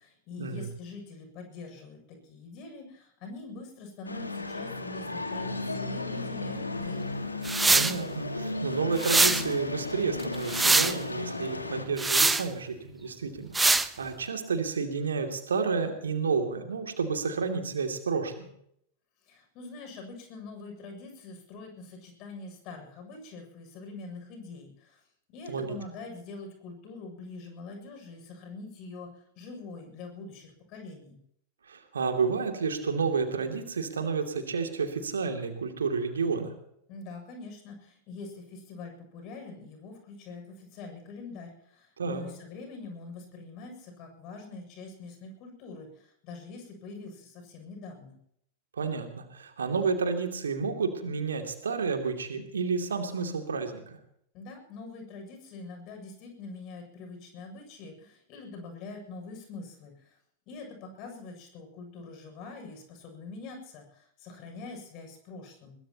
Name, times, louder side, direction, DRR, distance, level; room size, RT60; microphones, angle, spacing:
voice 1, 0.0-7.1 19.3-25.0 25.3-31.2 36.9-48.2 54.3-60.2 60.5-65.8, left 3 dB, 40° left, 4 dB, 7.1 m, -44 dB
sound 1, 4.0-11.8, left 2 dB, 80° left, 1.9 m, -34 dB
sound 2, 7.5-7.9 9.0-9.4 10.2-10.9 12.0-12.4 13.5-13.9, right 3 dB, 10° right, 0.9 m, -22 dB
voice 2, 7.7-18.5 25.5-25.8 31.6-36.5 42.0-42.2 48.7-54.0, right 5 dB, 70° right, 4 dB, 2.7 m, -30 dB
22.0 x 21.0 x 3.0 m, 0.71 s
figure-of-eight pair, 90°, 0 cm